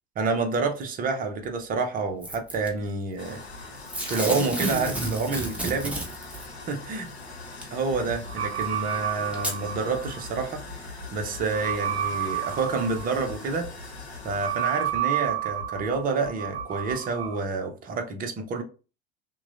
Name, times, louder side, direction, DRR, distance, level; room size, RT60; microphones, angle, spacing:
voice 1, 0.2-3.4 4.0-6.0 6.7-7.1 7.7-13.7 14.2-18.6, right 4 dB, 25° right, 0.8 m, -28 dB
Packing tape duct tape / Tearing, 2.2-2.7 3.9-6.5 7.6-7.7 8.6-8.7 9.3-9.6 10.3-10.4, right 1 dB, 5° right, 1.0 m, -31 dB
sound 1, 3.2-17.1, left 3 dB, 80° left, 1.0 m, -43 dB
sound 2, 7.9-17.4, right 9 dB, 70° right, 0.6 m, -32 dB
5.9 x 2.3 x 2.5 m
figure-of-eight pair, 80°, 32 cm